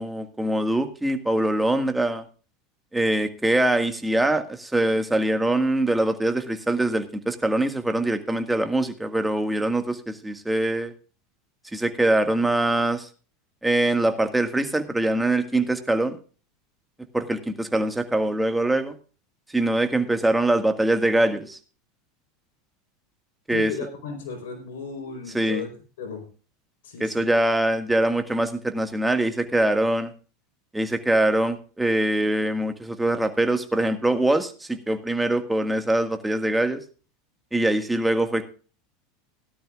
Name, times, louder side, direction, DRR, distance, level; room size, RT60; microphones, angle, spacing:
voice 1, 0.0-2.2 2.9-10.9 11.7-13.1 13.6-16.2 17.1-19.0 19.5-21.6 23.5-23.7 25.3-25.7 27.0-30.1 30.7-36.8 37.5-38.4, right 1 dB, 5° right, 7 dB, 1.8 m, -23 dB
voice 2, 23.5-25.7 26.0-26.3 26.8-27.3, left 4 dB, 80° left, 4 dB, 4.3 m, -35 dB
17.5 x 12.0 x 2.4 m, 0.37 s
supercardioid pair, 110°, 0 cm